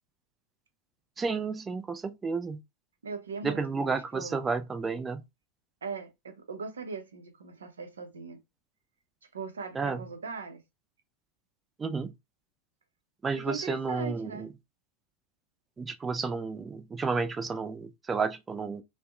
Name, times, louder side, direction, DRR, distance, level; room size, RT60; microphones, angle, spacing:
voice 1, 1.2-2.6 3.4-5.2 9.8-10.0 11.8-12.1 13.2-14.5 15.8-18.8, right 4 dB, 15° right, 0.3 m, -31 dB
voice 2, 3.0-4.4 5.8-8.4 9.3-10.6 13.4-14.5, right 4 dB, 70° right, 0.6 m, -39 dB
2.5 x 2.1 x 2.4 m
figure-of-eight pair, 90°, 0 cm